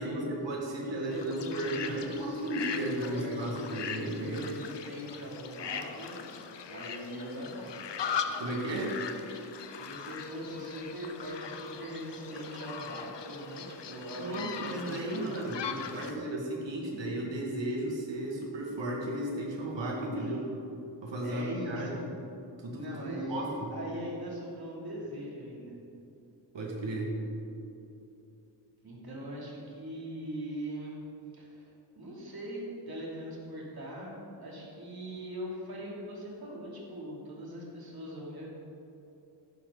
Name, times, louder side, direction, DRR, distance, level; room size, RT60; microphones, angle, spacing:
voice 1, 0.0-4.4 8.2-9.0 14.2-20.4 21.0-22.1 22.6-23.7 26.5-27.1, right 1 dB, 85° right, -1 dB, 2.5 m, -35 dB
voice 2, 0.7-6.2 6.7-7.7 9.8-15.3 15.6-16.3 20.1-20.3 21.2-21.9 22.7-25.7 28.8-31.0 31.3-38.5, right 1 dB, 55° right, -4 dB, 3.4 m, -41 dB
sound 1, 1.1-16.1, left 7 dB, 75° left, 0.9 m, -40 dB
sound 2, 10.1-14.4, left 1 dB, 35° left, 3.6 m, -48 dB
14.0 x 12.0 x 4.2 m, 2.8 s
wide cardioid pair, 90°, 43 cm